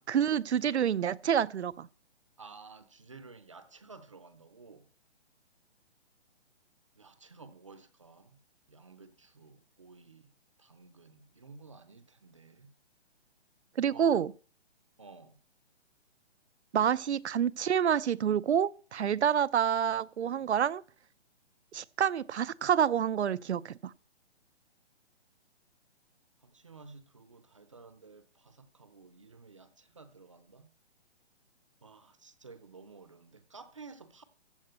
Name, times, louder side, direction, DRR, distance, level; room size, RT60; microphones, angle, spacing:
voice 1, 0.1-1.9 13.8-14.3 16.7-20.8 21.7-23.7, right 8 dB, 75° right, 0.7 m, -28 dB
voice 2, 2.4-4.9 6.9-8.4 8.7-10.3 10.6-12.7 13.9-14.2 15.0-15.4 26.4-30.7 31.8-34.2, right 4 dB, 30° right, 0.7 m, -53 dB
14.5 x 5.0 x 7.9 m
hypercardioid pair, 180°, 34 cm